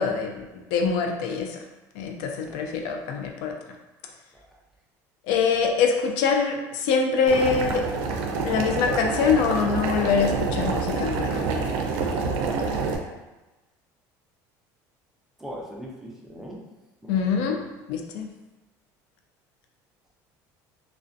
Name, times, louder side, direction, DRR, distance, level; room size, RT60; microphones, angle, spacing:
voice 1, 0.0-1.6 1.9-3.5 5.3-7.8 8.4-11.4 17.1-17.6 17.9-18.3, left 5 dB, 80° left, 3 dB, 0.3 m, -24 dB
Boiling, 7.3-13.0, right 4 dB, 80° right, 0.4 m, -27 dB
voice 2, 15.4-16.6 17.0-17.7, equal, 5° right, -3 dB, 0.3 m, -40 dB
2.5 x 2.1 x 2.4 m, 1.1 s
cardioid pair, 160°, 8 cm